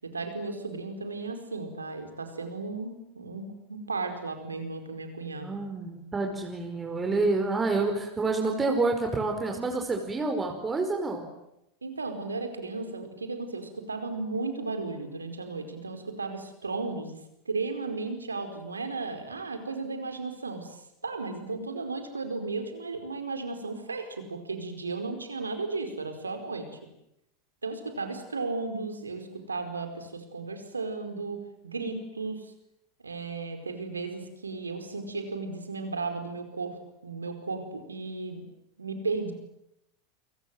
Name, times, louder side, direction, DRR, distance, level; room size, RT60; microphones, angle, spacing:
voice 1, 0.0-5.6 11.8-17.2 17.5-20.8 21.0-26.7 27.6-32.5 33.0-36.8 37.0-38.4 38.8-39.3, right 3 dB, 85° right, 7 dB, 4.7 m, -35 dB
voice 2, 5.4-11.3, right 3 dB, 20° right, 3 dB, 5.1 m, -28 dB
30.0 x 24.5 x 7.7 m, 0.84 s
figure-of-eight pair, 85°, 0 cm